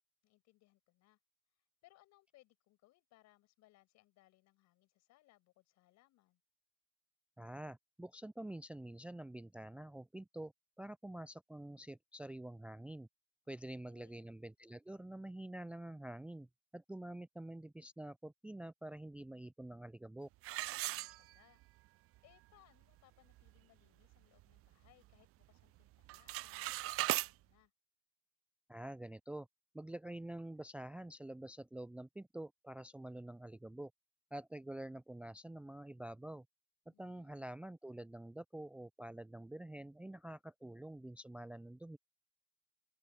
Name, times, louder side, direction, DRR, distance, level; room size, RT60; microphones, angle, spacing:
voice 1, 0.2-1.2 1.8-6.4 13.5-14.2 20.8-21.6 22.2-27.0 27.3-27.7 36.9-37.4, left 17 dB, 60° left, 7.0 m, -69 dB
voice 2, 7.4-13.1 13.5-16.5 16.7-20.3 28.7-29.5 29.7-33.9 34.3-36.5 36.9-42.0, right 1 dB, 5° right, 0.5 m, -47 dB
sound 1, 20.4-21.7 22.2-22.3 22.8-22.9 23.3-23.6 24.0-25.2 25.4-25.8 26.0-27.3, right 17 dB, 45° right, 0.6 m, -39 dB
open air
hypercardioid pair, 70°, 31 cm